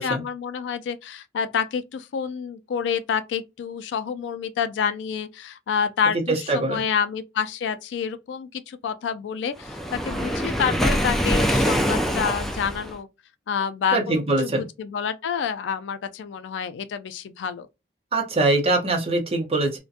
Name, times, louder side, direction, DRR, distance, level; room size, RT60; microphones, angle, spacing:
voice 1, 0.0-13.1 13.5-17.7, left 7 dB, 90° left, 0.3 m, -28 dB
voice 2, 6.3-6.8 13.9-14.6 18.1-19.8, right 2 dB, 35° right, 0.6 m, -23 dB
Waves surf, 9.6-12.9, equal, ahead, 0.3 m, -24 dB
2.4 x 2.1 x 2.6 m
head